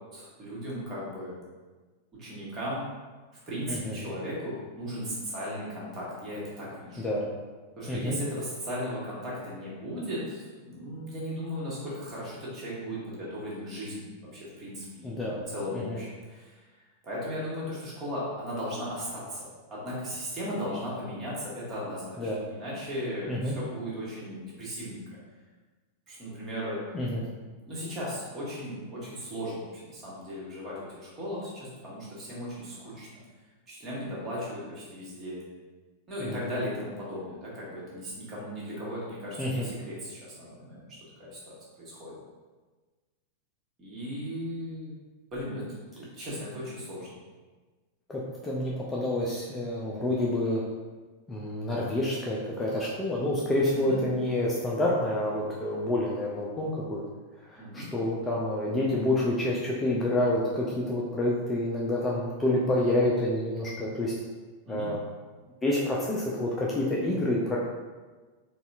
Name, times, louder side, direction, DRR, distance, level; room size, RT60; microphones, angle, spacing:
voice 1, 0.1-1.3 2.2-2.8 3.5-7.1 7.8-14.1 14.3-16.6 17.0-25.0 26.1-26.8 27.6-33.1 33.7-35.4 36.1-40.9 41.2-42.1 43.8-44.9 45.3-45.6 45.9-47.1 53.7-54.0 57.6-57.9 64.7-64.9, equal, 25° right, -7 dB, 1.3 m, -36 dB
voice 2, 3.7-4.1 7.0-7.3 7.9-8.2 15.0-15.4 15.7-16.0 22.2-22.4 23.3-23.5 26.9-27.2 36.2-36.5 39.4-39.7 48.1-50.6 51.3-57.0 57.5-64.1 64.7-65.0 65.6-67.6, left 1 dB, 15° left, -4 dB, 0.4 m, -28 dB
4.0 x 2.4 x 2.5 m, 1.3 s
figure-of-eight pair, 90°, 0 cm